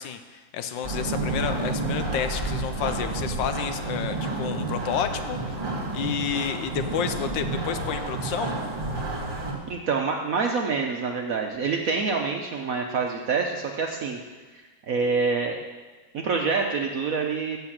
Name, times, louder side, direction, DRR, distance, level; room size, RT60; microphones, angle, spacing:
voice 1, 0.0-5.6 5.9-8.5, left 8 dB, 75° left, 9 dB, 1.3 m, -30 dB
sound 1, 0.8-9.5, right 2 dB, 25° right, 1.7 m, -30 dB
voice 2, 9.7-14.2 14.9-15.6 16.1-17.6, right 4 dB, 65° right, 2 dB, 0.9 m, -26 dB
8.5 x 6.7 x 7.3 m, 1.3 s
omnidirectional pair, 2.2 m